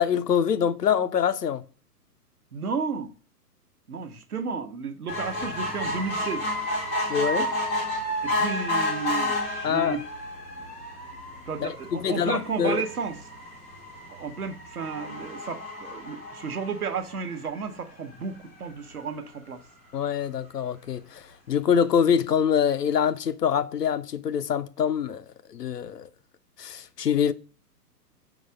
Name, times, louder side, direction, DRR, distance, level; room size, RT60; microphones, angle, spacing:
voice 1, 0.0-1.6 7.1-7.5 9.6-10.0 11.6-12.8 19.9-26.1 26.6-27.3, left 8 dB, 75° left, 0.6 m, -25 dB
voice 2, 2.5-3.1 3.9-6.5 8.2-10.0 11.5-13.2 14.1-19.6, right 5 dB, 65° right, 1.0 m, -33 dB
sound 1, 5.1-17.7 18.2-18.3 18.6-18.7 19.0-19.1, left 1 dB, 10° left, 0.4 m, -31 dB
4.8 x 4.0 x 5.0 m
figure-of-eight pair, 120°, 48 cm